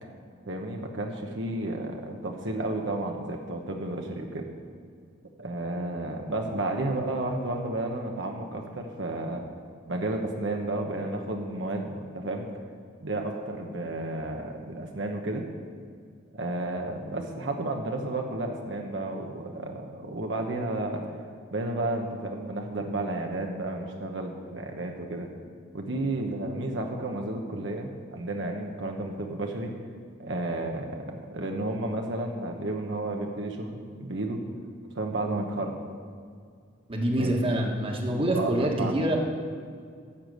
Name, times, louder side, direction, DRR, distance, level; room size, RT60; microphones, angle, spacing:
voice 1, 0.5-4.4 5.4-9.4 9.9-12.5 13.0-15.4 16.3-21.0 21.5-25.3 25.7-29.7 30.2-34.4 34.9-35.8 37.2-37.5 38.3-38.9, right 2 dB, 65° right, 2 dB, 1.0 m, -32 dB
voice 2, 36.9-39.2, right 1 dB, 30° right, 0 dB, 1.5 m, -26 dB
11.5 x 6.9 x 7.9 m, 2.2 s
head